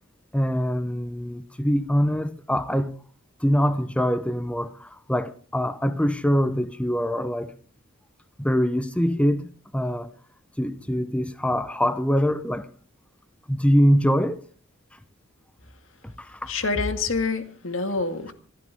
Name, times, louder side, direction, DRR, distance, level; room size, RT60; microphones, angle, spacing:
voice 1, 0.3-3.0 3.4-7.5 8.4-9.5 9.7-10.1 10.6-12.7 13.5-14.4 16.0-16.5, equal, 5° left, 0.7 m, -23 dB
voice 2, 16.5-18.3, left 4 dB, 80° left, 1.9 m, -27 dB
26.0 x 12.0 x 3.5 m
head